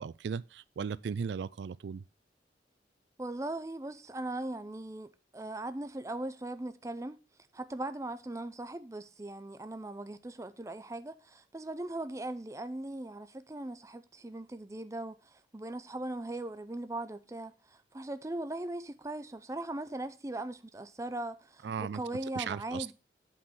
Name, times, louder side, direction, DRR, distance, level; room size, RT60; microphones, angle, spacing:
voice 1, 0.0-2.0 21.6-22.0 22.4-22.9, right 6 dB, 80° right, 0.4 m, -37 dB
voice 2, 3.2-7.2 7.5-22.9, right 2 dB, 15° right, 0.5 m, -39 dB
8.7 x 3.9 x 7.0 m
head